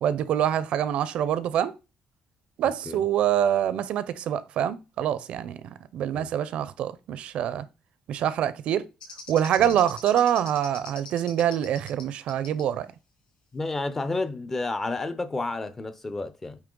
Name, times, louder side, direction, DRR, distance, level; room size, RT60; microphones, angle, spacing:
voice 1, 0.0-1.7 2.6-7.7 8.1-8.8 9.3-12.9, right 10 dB, 60° right, 0.5 m, -25 dB
sound 1, 9.0-12.0 12.3-12.6, left 6 dB, 50° left, 3.3 m, -41 dB
voice 2, 13.5-16.6, left 3 dB, 15° left, 0.5 m, -31 dB
8.7 x 3.1 x 3.8 m
cardioid pair, 180°, 2 cm